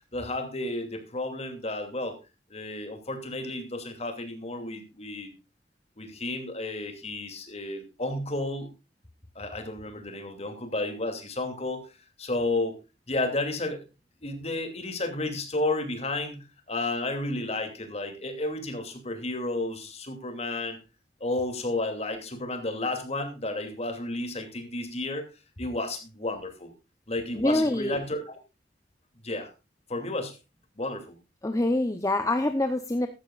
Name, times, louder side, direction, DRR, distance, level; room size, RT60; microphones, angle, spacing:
voice 1, 0.1-2.2 2.5-5.3 6.0-8.7 9.3-11.9 12.2-12.7 13.1-13.9 14.2-20.8 21.2-25.3 25.6-26.7 27.1-28.4 29.2-29.5 29.9-30.4 30.8-31.1, left 2 dB, 35° left, 6 dB, 2.7 m, -32 dB
voice 2, 27.3-28.0 31.4-33.1, left 1 dB, 20° left, 8 dB, 0.8 m, -25 dB
14.5 x 12.5 x 2.5 m, 0.28 s
head